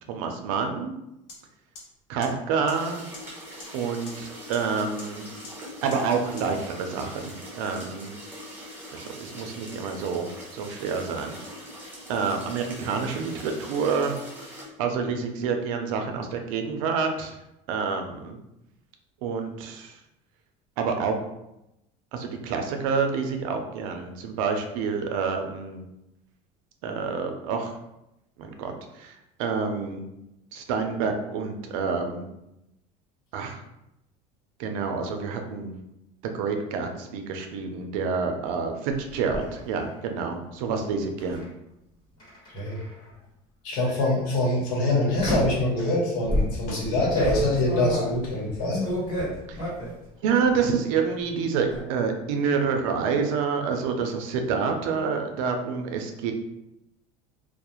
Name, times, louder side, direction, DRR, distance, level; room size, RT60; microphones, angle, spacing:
voice 1, 0.1-0.9 2.1-3.0 3.7-5.3 5.8-8.1 8.9-10.3 10.5-11.4 12.1-14.1 14.8-17.4 17.7-18.4 19.2-20.0 20.8-21.2 22.1-25.8 26.8-27.8 28.4-30.0 30.5-32.3 33.3-33.6 34.6-35.7 36.2-41.4 49.5-49.6 50.2-56.3, right 5 dB, 90° right, 5 dB, 0.4 m, -28 dB
sound 1, 1.3-1.4 1.8-1.9 2.2-2.3 2.7-2.8 3.1-3.2 3.6-3.7 4.1-4.2 4.5-4.6 5.0-5.1 5.4-5.5 5.9-6.0 6.4-6.5, left 3 dB, 55° left, 0.6 m, -41 dB
sound 2, 2.7-14.6, equal, 10° right, 0.7 m, -42 dB
sound 3, 38.9-39.5 41.2-41.4 42.2-43.0 43.8-44.1 45.2-45.7 46.3-50.0 50.4-50.9 51.2-51.8, equal, 25° left, 1.2 m, -30 dB
voice 2, 42.5-42.8 43.6-48.9 49.1-49.2 49.5-49.6, left 1 dB, 80° left, -3 dB, 1.0 m, -25 dB
2.3 x 2.0 x 2.9 m, 0.88 s
cardioid pair, 160°, 17 cm